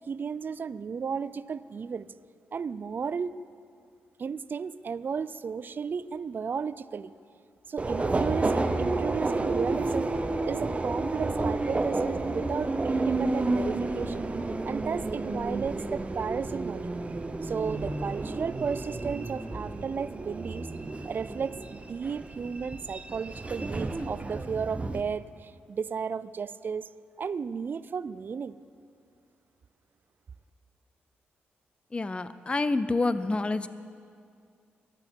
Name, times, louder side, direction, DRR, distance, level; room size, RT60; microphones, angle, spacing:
voice 1, 0.1-2.1 2.5-3.3 4.2-7.1 7.7-10.1 10.4-14.3 14.6-16.9 17.4-20.7 21.0-26.9 27.2-28.6, right 6 dB, 50° right, 16 dB, 0.4 m, -34 dB
Subway metro underground, 7.8-25.0, right 2 dB, 30° right, 0.8 m, -31 dB
voice 2, 31.9-33.7, left 3 dB, 25° left, 14 dB, 0.5 m, -28 dB
22.5 x 7.8 x 4.6 m, 2.3 s
supercardioid pair, 55°, 4 cm